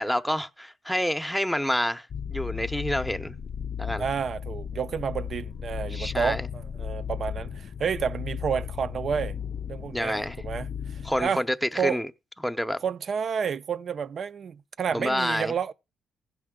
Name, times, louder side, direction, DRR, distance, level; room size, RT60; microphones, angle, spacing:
voice 1, 0.0-3.3 3.8-4.0 5.9-6.5 9.9-10.4 11.0-12.1 12.4-12.8 14.9-15.5, equal, ahead, 0.7 m, -28 dB
sound 1, 2.1-11.3, left 8 dB, 50° left, 0.5 m, -35 dB
voice 2, 4.0-9.4 9.7-11.4 11.8-12.0 12.8-15.7, right 7 dB, 50° right, 0.5 m, -30 dB
15.5 x 5.6 x 3.7 m
cardioid pair, 90°, 0 cm